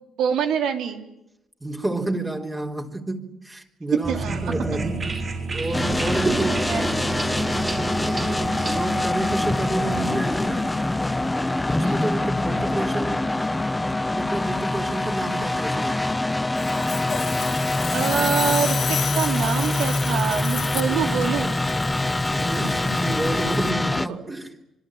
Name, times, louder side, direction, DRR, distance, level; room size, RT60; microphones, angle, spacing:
voice 1, 0.2-1.1 4.1-4.5 6.5-6.9 8.5-8.8 11.8-12.0 17.9-21.6 24.1-24.2, right 7 dB, 85° right, 5 dB, 3.3 m, -26 dB
voice 2, 1.6-5.1 5.5-7.3 8.6-10.7 11.4-13.4 13.8-16.0 22.3-24.5, right 2 dB, 20° right, 1 dB, 3.9 m, -30 dB
sound 1, 4.0-11.5, right 3 dB, 35° right, 7.0 m, -30 dB
sound 2, 5.7-24.1, left 2 dB, 15° left, 1.1 m, -24 dB
Sawing, 16.5-23.7, left 7 dB, 60° left, 2.7 m, -32 dB
26.0 x 22.5 x 9.2 m, 0.88 s
cardioid pair, 90°, 0 cm